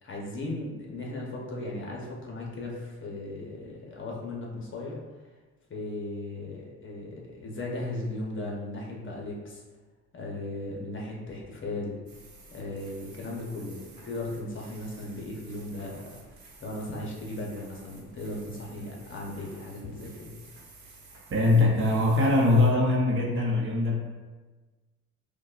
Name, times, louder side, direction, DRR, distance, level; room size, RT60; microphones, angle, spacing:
voice 1, 0.0-5.0 5.7-9.6 10.1-12.0 12.5-20.3, left 2 dB, 40° left, -2 dB, 0.9 m, -37 dB
sound 1, 12.1-22.7, right 3 dB, 75° right, 1.0 m, -53 dB
voice 2, 21.3-24.0, left 2 dB, 40° right, -1 dB, 0.8 m, -22 dB
5.0 x 2.3 x 2.4 m, 1.3 s
cardioid pair, 90°, 30 cm